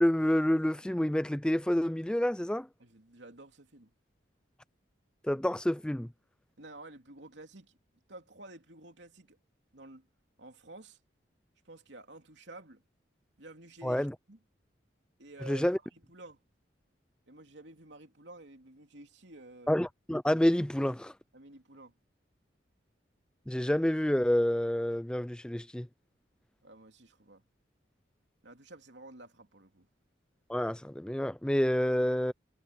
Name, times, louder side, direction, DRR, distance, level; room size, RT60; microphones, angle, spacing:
voice 1, 0.0-2.7 5.2-6.1 13.8-14.1 15.5-15.8 19.7-21.1 23.5-25.9 30.5-32.3, equal, 5° left, 0.3 m, -28 dB
voice 2, 2.8-3.9 6.6-7.8 8.1-9.4 9.7-10.1 10.4-11.0 11.6-12.8 13.4-14.4 15.2-16.4 17.3-19.7 21.3-21.9 26.6-27.4 28.4-29.9, right 2 dB, 75° right, 3.1 m, -51 dB
head